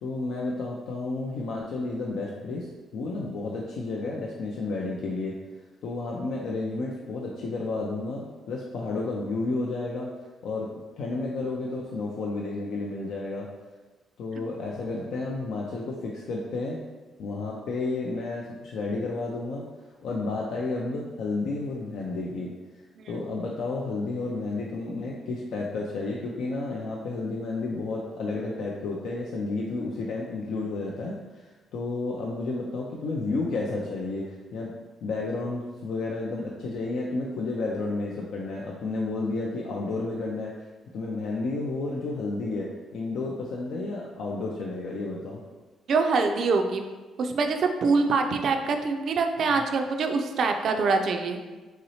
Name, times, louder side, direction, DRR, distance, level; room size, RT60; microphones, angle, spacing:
voice 1, 0.0-5.4 5.8-10.1 10.4-10.7 11.0-13.5 14.2-16.8 17.2-19.6 20.0-22.5 23.1-34.7 35.0-40.7 40.9-45.4 49.5-49.6, left 3 dB, 75° left, -2 dB, 0.4 m, -31 dB
voice 2, 45.9-46.8 47.2-51.4, right 4 dB, 65° right, 5 dB, 0.3 m, -24 dB
3.1 x 2.8 x 2.7 m, 1.3 s
supercardioid pair, 60°, 0 cm